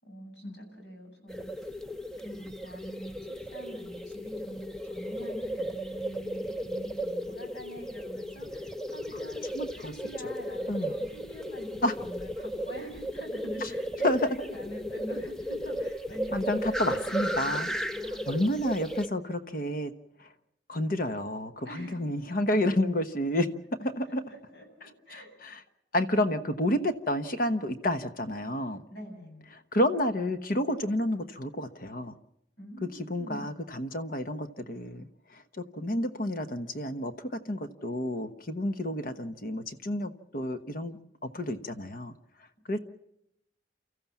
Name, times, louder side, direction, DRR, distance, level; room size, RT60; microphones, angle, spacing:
voice 1, 0.0-1.7 2.2-3.1 3.5-4.6 4.9-18.2 21.6-22.0 24.3-25.4 28.9-29.4 32.6-33.6 42.7-42.8, right 1 dB, 75° left, 3 dB, 7.9 m, -45 dB
sound 1, 1.3-19.1, equal, 5° left, 0.8 m, -35 dB
voice 2, 9.5-9.9 10.7-10.9 11.8-11.9 13.6-13.7 14.0-14.2 16.3-17.7 18.3-19.9 20.2-20.3 20.7-23.5 23.8-24.2 24.8-25.6 25.9-28.8 29.7-32.1 33.1-42.1 42.7-42.8, left 1 dB, 50° left, 8 dB, 1.1 m, -30 dB
30.0 x 14.5 x 7.2 m, 0.82 s
head